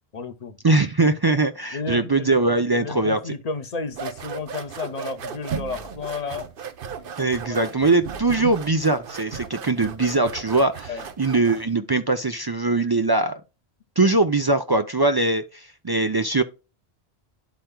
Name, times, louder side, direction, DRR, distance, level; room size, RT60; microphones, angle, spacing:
voice 1, 0.1-0.6 1.7-2.4 2.7-6.5 7.2-7.6 10.9-11.1, left 4 dB, 40° left, 0.8 m, -32 dB
voice 2, 0.6-3.3 7.2-10.9 11.2-13.4 14.0-16.4, right 2 dB, 40° right, 0.3 m, -21 dB
sound 1, 3.9-11.7, right 6 dB, 60° right, 0.9 m, -35 dB
11.5 x 4.5 x 2.2 m
omnidirectional pair, 1.1 m